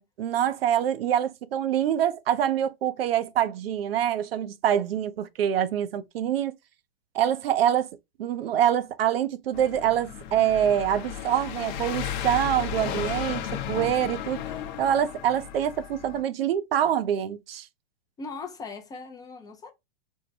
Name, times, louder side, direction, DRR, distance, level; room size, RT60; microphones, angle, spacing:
voice 1, 0.2-6.5 7.1-7.9 8.2-14.4 14.8-17.7, right 10 dB, 70° right, 0.6 m, -25 dB
sound 1, 9.5-16.2, left 10 dB, 50° left, 0.7 m, -34 dB
voice 2, 18.2-19.7, left 4 dB, 15° left, 0.4 m, -39 dB
4.4 x 2.1 x 2.7 m
hypercardioid pair, 125°, 31 cm